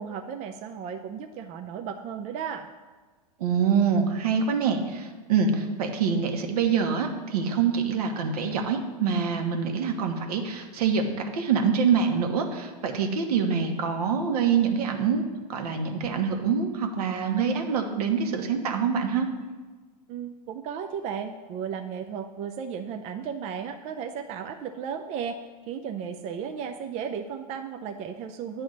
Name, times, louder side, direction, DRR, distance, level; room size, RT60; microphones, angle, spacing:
voice 1, 0.0-2.7 20.1-25.4 25.7-28.6, right 7 dB, 35° right, 5 dB, 0.5 m, -34 dB
voice 2, 3.4-15.2 15.5-19.3, right 6 dB, 70° right, 4 dB, 1.2 m, -25 dB
9.4 x 3.5 x 6.4 m, 1.4 s
hypercardioid pair, 115°, 21 cm